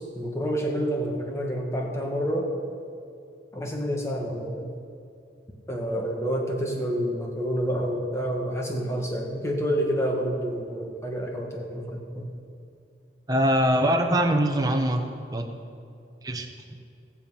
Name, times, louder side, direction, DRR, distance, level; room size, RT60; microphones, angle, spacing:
voice 1, 0.0-2.5 3.5-4.7 5.7-12.3, equal, 15° left, 0 dB, 1.6 m, -28 dB
voice 2, 13.3-15.0 15.3-15.5 16.2-16.5, equal, 20° right, 3 dB, 1.1 m, -22 dB
18.5 x 7.4 x 5.6 m, 2.6 s
head